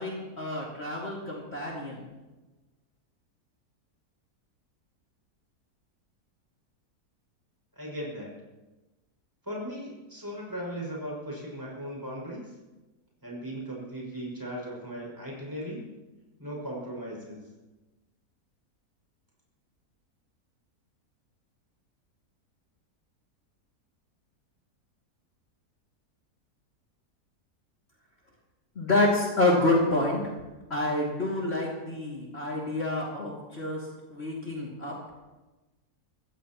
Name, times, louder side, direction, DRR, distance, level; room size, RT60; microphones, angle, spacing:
voice 1, 0.0-2.0 28.8-30.2 30.7-33.8 34.1-34.9, left 2 dB, 40° left, -3 dB, 2.6 m, -28 dB
voice 2, 7.8-8.3 9.4-12.5 13.2-15.9 16.4-17.4, equal, 10° right, -4 dB, 6.0 m, -37 dB
23.5 x 15.5 x 3.0 m, 1.1 s
omnidirectional pair, 1.6 m